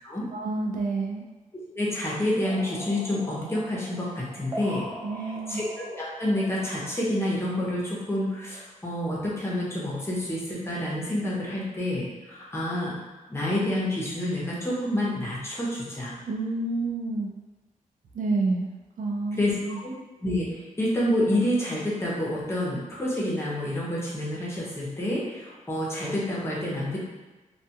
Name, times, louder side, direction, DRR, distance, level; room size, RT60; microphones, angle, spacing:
voice 1, 0.3-1.2 5.0-5.6 16.3-17.3 18.1-18.7 19.0-19.4 19.6-19.8, right 3 dB, 75° right, 2 dB, 0.4 m, -28 dB
voice 2, 1.8-4.9 5.5-12.9 13.3-16.1 19.4-19.5 19.8-19.9 20.2-27.0, left 1 dB, 20° left, -6 dB, 0.7 m, -28 dB
sound 1, 2.4-7.8, right 1 dB, 25° right, 0.7 m, -41 dB
2.3 x 2.3 x 2.8 m, 1.2 s
wide cardioid pair, 105°, 14 cm